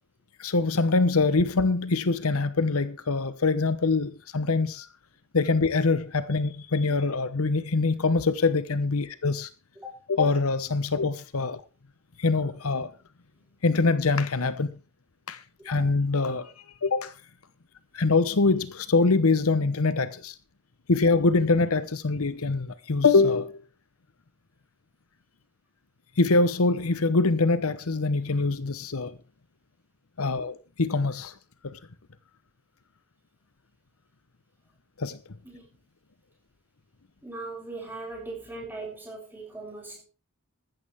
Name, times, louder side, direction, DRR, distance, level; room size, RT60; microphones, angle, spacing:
voice 1, 0.4-4.9 5.3-9.5 10.1-11.6 12.2-12.9 13.6-14.7 15.3-16.5 16.8-17.1 17.9-20.3 20.9-23.6 26.2-29.2 30.2-31.3 31.6-31.8 35.0-35.2, left 3 dB, 75° left, 0.9 m, -24 dB
voice 2, 35.4-35.8 37.2-40.0, right 2 dB, 10° right, 7.4 m, -40 dB
14.0 x 13.5 x 3.5 m
head